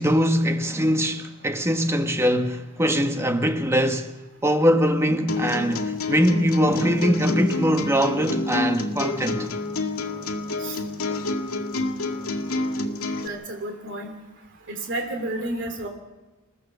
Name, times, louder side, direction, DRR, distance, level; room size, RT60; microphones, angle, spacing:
voice 1, 0.0-4.1 4.4-9.5, equal, 10° right, 1.2 m, -22 dB
sound 1, 5.3-13.3, left 2 dB, 85° left, 2.1 m, -28 dB
voice 2, 13.2-14.2 14.7-15.9, right 1 dB, 55° right, 3.1 m, -31 dB
28.5 x 15.0 x 6.7 m
head